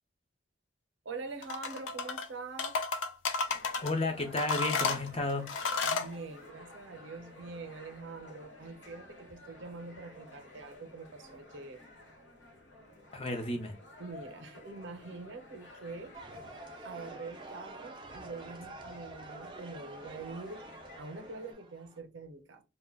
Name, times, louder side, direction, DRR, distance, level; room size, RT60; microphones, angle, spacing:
voice 1, 1.0-2.8 5.8-11.8 14.0-16.2 16.8-20.7 21.0-22.6, right 3 dB, 85° right, 0.6 m, -44 dB
sound 1, 1.4-2.3 2.6-3.9 4.4-6.1, left 4 dB, 90° left, 0.4 m, -32 dB
sound 2, 3.5-21.5, left 1 dB, 70° left, 0.9 m, -54 dB
voice 2, 3.8-5.5 13.1-13.7, left 2 dB, 30° left, 0.5 m, -32 dB
sound 3, 16.1-22.0, right 2 dB, 25° right, 0.3 m, -48 dB
2.2 x 2.1 x 3.4 m
head